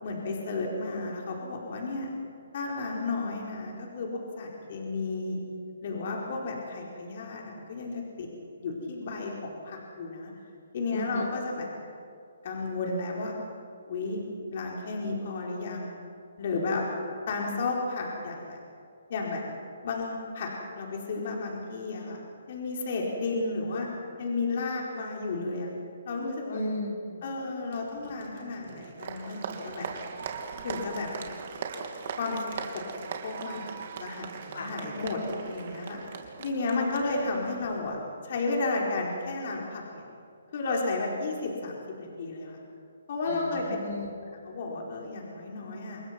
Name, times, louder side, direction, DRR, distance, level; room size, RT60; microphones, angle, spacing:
voice 1, 0.0-2.1 2.5-5.4 5.8-8.3 8.6-10.3 10.7-11.7 12.4-13.4 13.9-14.2 14.5-16.0 16.4-16.8 17.3-18.6 19.1-19.4 19.8-22.2 22.5-23.9 24.2-25.7 26.0-26.6 27.2-29.9 30.6-31.1 32.2-33.7 34.0-36.0 36.4-38.0 38.2-40.1 40.5-42.6 43.1-43.6 44.2-46.0, left 3 dB, 50° left, -1 dB, 4.5 m, -33 dB
voice 2, 10.9-11.3 26.5-27.2 34.5-34.7 37.0-37.1 43.3-44.1, left 1 dB, 65° left, 0 dB, 4.8 m, -34 dB
Applause, 27.7-37.8, right 6 dB, 45° right, 2.8 m, -40 dB
28.0 x 22.5 x 6.0 m, 2.5 s
hypercardioid pair, 155°, 0 cm